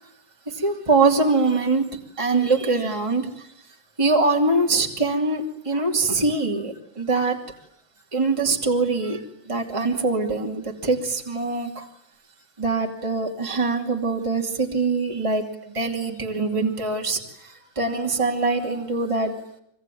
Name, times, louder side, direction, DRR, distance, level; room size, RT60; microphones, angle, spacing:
voice 1, 0.5-3.5 4.0-7.4 8.1-11.9 12.6-19.3, right 3 dB, 15° right, 1 dB, 2.7 m, -23 dB
24.5 x 24.5 x 9.3 m, 0.74 s
omnidirectional pair, 2.0 m